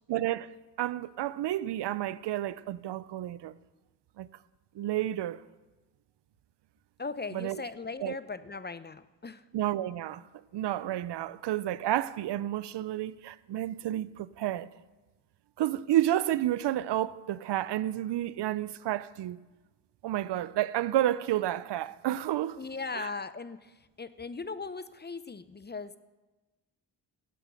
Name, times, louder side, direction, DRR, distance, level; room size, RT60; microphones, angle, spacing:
voice 1, 0.1-3.5 4.2-4.3 4.8-5.4 7.3-7.6 8.0-8.2 9.5-10.2 10.5-14.7 15.6-19.4 20.0-22.6 23.0-23.1, right 13 dB, 70° right, 0.6 m, -30 dB
voice 2, 7.0-9.4 22.6-25.9, left 4 dB, 25° left, 0.6 m, -39 dB
12.0 x 8.3 x 8.1 m
cardioid pair, 60°, 44 cm